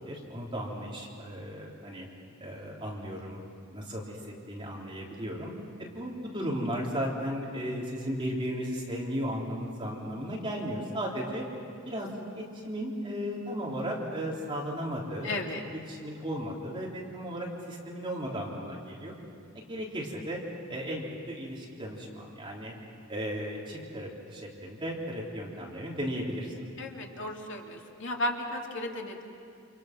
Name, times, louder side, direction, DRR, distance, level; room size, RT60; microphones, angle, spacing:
voice 1, 0.0-2.1 2.4-3.4 3.7-5.5 5.8-11.5 11.9-15.3 15.9-19.2 19.5-20.4 20.7-22.7 23.1-26.7, equal, 25° right, -3 dB, 3.7 m, -35 dB
voice 2, 15.2-15.6 26.8-29.2, left 1 dB, 65° left, 1 dB, 2.5 m, -34 dB
29.0 x 28.0 x 6.1 m, 2.4 s
head